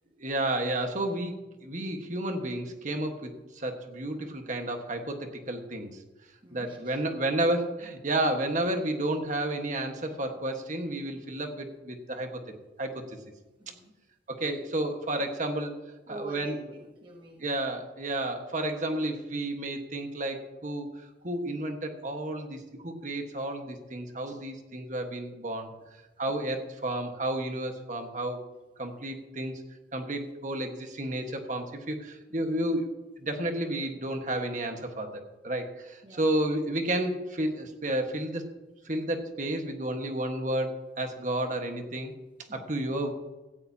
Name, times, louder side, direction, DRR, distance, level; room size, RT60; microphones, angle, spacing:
voice 1, 0.2-6.0 6.5-12.4 12.8-13.2 14.3-15.8 16.1-16.5 17.4-20.9 21.2-25.7 26.2-28.4 28.8-29.6 29.9-32.9 33.2-38.4 38.8-42.1 42.5-43.1, right 1 dB, 45° right, 4 dB, 1.4 m, -31 dB
voice 2, 6.4-7.0 11.4-11.5 13.6-14.0 15.1-15.3 16.1-17.4 26.3-26.4 32.3-32.4 36.0-36.3 42.5-42.9, right 2 dB, 25° right, 0 dB, 1.1 m, -47 dB
17.0 x 15.0 x 2.8 m, 1.1 s
head